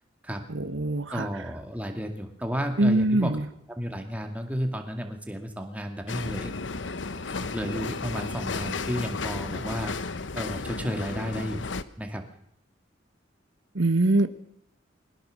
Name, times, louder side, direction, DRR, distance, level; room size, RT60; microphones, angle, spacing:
voice 1, 0.5-1.2 2.8-3.4 13.7-14.3, right 2 dB, 85° right, 10 dB, 1.3 m, -23 dB
voice 2, 1.1-3.4 3.7-6.6 7.2-9.9 10.4-11.6 12.0-12.3, equal, 10° right, 4 dB, 2.2 m, -33 dB
sound 1, 6.1-11.8, left 3 dB, 75° left, 1.0 m, -33 dB
22.0 x 18.5 x 6.5 m, 0.74 s
head